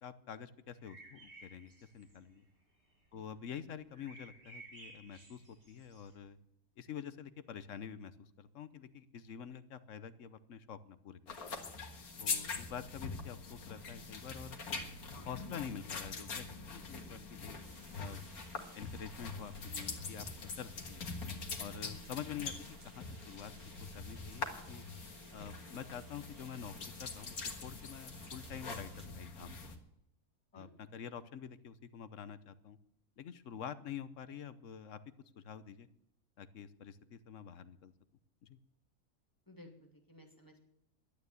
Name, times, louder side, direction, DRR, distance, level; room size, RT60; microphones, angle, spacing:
voice 1, 0.0-2.5 3.1-6.4 6.8-11.6 12.2-14.6 15.2-17.6 18.0-18.2 18.6-20.3 20.6-21.0 21.6-24.8 25.3-29.8 30.5-32.8 33.2-35.0 35.4-35.9 36.4-37.9 38.4-38.6, left 8 dB, 60° left, 13 dB, 1.1 m, -47 dB
sound 1, 0.7-2.4 2.9-3.0 3.3-6.2, right 2 dB, 45° right, 3.7 m, -56 dB
sound 2, 11.3-29.8, left 4 dB, 80° left, 2.1 m, -44 dB
sound 3, 17.5-29.1, right 3 dB, 80° right, 2.4 m, -61 dB
voice 2, 39.5-40.6, left 1 dB, 15° left, 2 dB, 2.4 m, -57 dB
12.0 x 9.2 x 9.6 m, 0.76 s
omnidirectional pair, 1.5 m